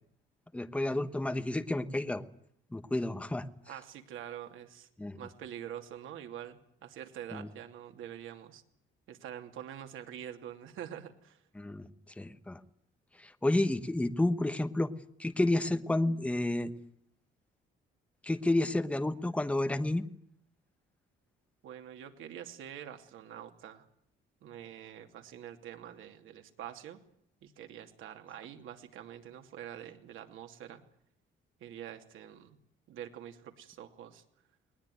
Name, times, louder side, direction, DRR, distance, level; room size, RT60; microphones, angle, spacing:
voice 1, 0.5-2.2 2.7-3.5 5.0-5.2 7.3-7.5 11.6-11.9 12.2-12.6 13.2-14.9 15.2-16.7 18.2-20.1, left 1 dB, 5° left, 10 dB, 1.1 m, -30 dB
voice 2, 3.7-4.9 5.1-8.6 9.1-11.4 21.6-23.9 24.4-27.0 27.4-30.8 31.6-32.6 32.9-34.2, right 10 dB, 90° right, 6 dB, 2.8 m, -46 dB
20.0 x 20.0 x 9.4 m, 0.70 s
cardioid pair, 175°, 20 cm